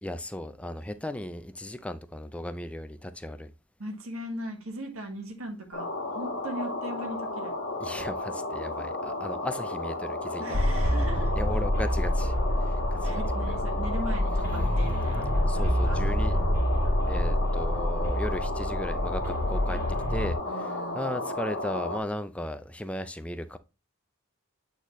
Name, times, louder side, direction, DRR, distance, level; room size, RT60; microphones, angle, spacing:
voice 1, 0.0-3.5 7.8-10.6 11.4-12.3 12.6-13.6 15.5-16.4 17.1-19.8 20.1-23.6, left 1 dB, 5° left, 0.4 m, -36 dB
voice 2, 3.8-7.5 10.4-11.3 13.0-16.4 20.5-21.2, right 1 dB, 75° right, 1.5 m, -39 dB
sound 1, 5.7-22.0, left 2 dB, 55° left, 1.6 m, -33 dB
sound 2, 10.5-20.3, equal, 35° right, 2.3 m, -27 dB
8.3 x 4.0 x 3.0 m
head